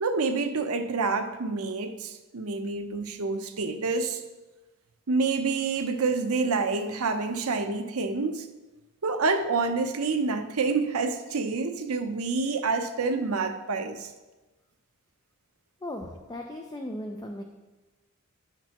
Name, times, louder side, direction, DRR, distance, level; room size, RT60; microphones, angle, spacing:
voice 1, 0.0-4.2 5.1-8.5 9.0-14.1, right 4 dB, 80° right, 7 dB, 0.7 m, -28 dB
voice 2, 15.8-17.4, left 1 dB, 15° left, 3 dB, 0.4 m, -37 dB
10.0 x 5.9 x 3.0 m, 1.1 s
head